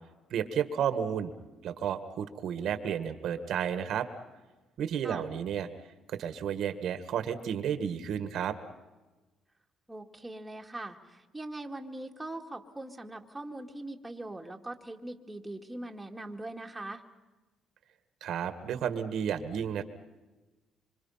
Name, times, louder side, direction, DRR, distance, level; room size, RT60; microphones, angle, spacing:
voice 1, 0.3-1.3 1.6-4.1 4.8-5.7 6.1-8.6 18.2-19.8, right 8 dB, 70° right, 10 dB, 1.7 m, -32 dB
voice 2, 9.9-17.0, right 2 dB, 10° right, 1 dB, 2.0 m, -41 dB
26.5 x 25.5 x 5.7 m, 1.2 s
cardioid pair, 110°, 0 cm